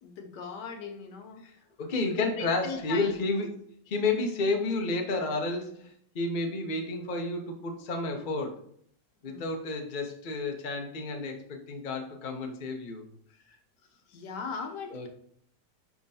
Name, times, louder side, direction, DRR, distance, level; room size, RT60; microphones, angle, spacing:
voice 1, 0.0-1.4 2.4-3.1 9.3-9.5 14.1-15.1, left 5 dB, 75° left, 4 dB, 1.4 m, -39 dB
voice 2, 1.8-3.6 3.9-8.6 9.2-13.0 13.5-13.6 14.9-15.1, left 3 dB, 35° left, 3 dB, 0.8 m, -31 dB
10.5 x 3.7 x 2.8 m, 0.63 s
omnidirectional pair, 1.9 m